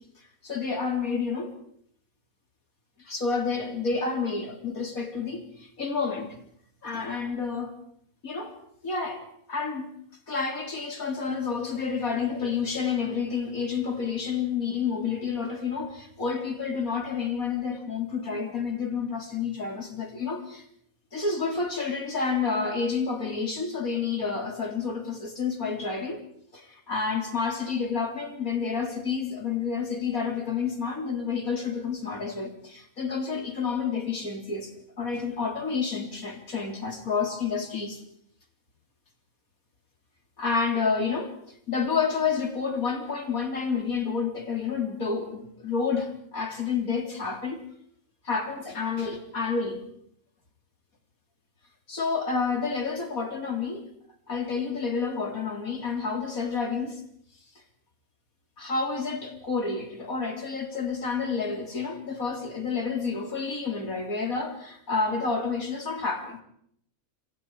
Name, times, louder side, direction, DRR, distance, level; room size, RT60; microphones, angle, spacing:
voice 1, 0.2-1.5 3.0-6.4 6.8-7.8 8.2-8.6 8.8-9.9 10.3-20.6 21.1-26.2 26.5-38.0 40.4-41.4 41.7-47.7 48.2-49.8 51.9-53.9 54.3-57.0 58.6-66.4, left 5 dB, 80° left, 4 dB, 4.1 m, -29 dB
27.5 x 25.5 x 4.9 m, 0.68 s
omnidirectional pair, 1.5 m